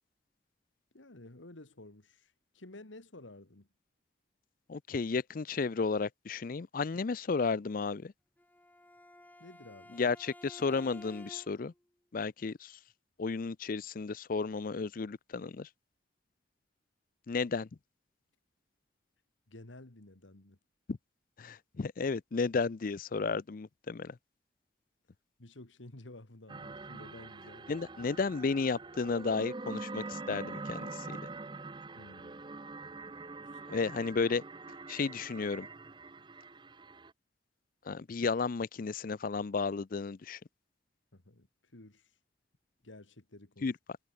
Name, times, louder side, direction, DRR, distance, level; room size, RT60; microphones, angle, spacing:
voice 1, 0.9-3.7 9.4-10.0 19.5-20.6 25.4-27.7 32.0-32.5 33.4-33.6 41.1-41.5 41.7-42.1 42.8-43.7, left 2 dB, 90° left, 2.2 m, -52 dB
voice 2, 4.7-8.1 9.9-11.7 12.1-12.8 13.2-15.7 17.3-17.7 20.9-21.0 21.4-24.2 27.7-31.2 33.7-34.4 34.9-35.7 37.9-40.4 43.6-43.7, left 4 dB, 50° left, 0.5 m, -33 dB
Bowed string instrument, 8.4-11.8, left 1 dB, 10° left, 2.5 m, -53 dB
sound 1, 26.5-37.1, right 3 dB, 25° right, 0.7 m, -44 dB
head